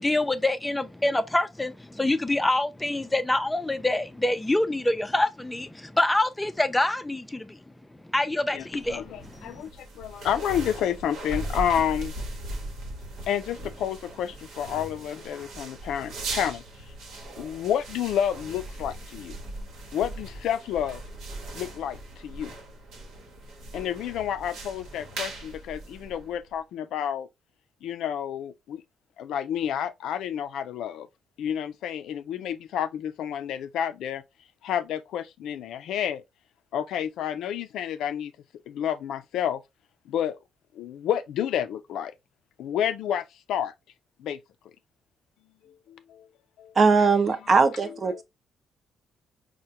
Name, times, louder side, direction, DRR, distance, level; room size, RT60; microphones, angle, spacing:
voice 1, 0.0-7.6 8.0-9.5, left 1 dB, 10° left, 0.4 m, -26 dB
voice 2, 8.5-12.1 13.3-16.6 17.4-19.4 19.9-21.0 21.5-22.5 23.7-27.3 27.8-28.8 29.2-31.1 31.4-34.2 34.6-36.2 36.7-38.3 38.7-39.6 40.1-40.4 40.8-42.1 42.6-43.7 44.2-44.4 45.6-46.3 46.6-46.7 48.1-48.2, left 9 dB, 80° left, 0.4 m, -30 dB
sound 1, 8.7-26.5, right 2 dB, 80° right, 1.0 m, -39 dB
voice 3, 46.8-48.2, right 4 dB, 40° right, 0.6 m, -20 dB
4.6 x 2.1 x 2.7 m
cardioid pair, 90°, 0 cm